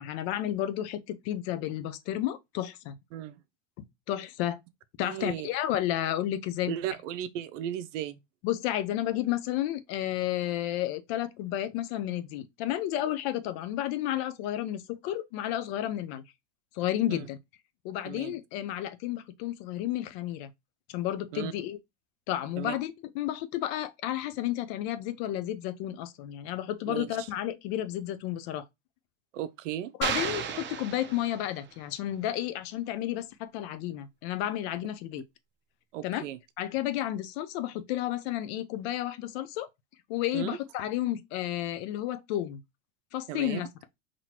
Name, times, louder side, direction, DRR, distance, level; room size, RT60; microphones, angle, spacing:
voice 1, 0.0-3.0 3.8-4.6 5.0-6.7 8.4-16.2 16.7-17.4 17.8-20.5 20.9-21.8 22.3-28.6 30.0-35.2 36.0-36.2 36.6-39.7 40.1-42.6 43.1-43.7, left 13 dB, 60° left, 0.7 m, -32 dB
voice 2, 5.0-5.5 6.7-8.2 17.1-17.2 18.0-18.3 21.3-21.5 22.6-22.7 26.9-27.3 29.3-29.9 35.9-36.4 40.3-40.6 43.3-43.6, right 11 dB, 75° right, 0.7 m, -35 dB
sound 1, 30.0-31.7, right 7 dB, 30° right, 0.7 m, -33 dB
4.1 x 3.0 x 2.9 m
hypercardioid pair, 105°, 37 cm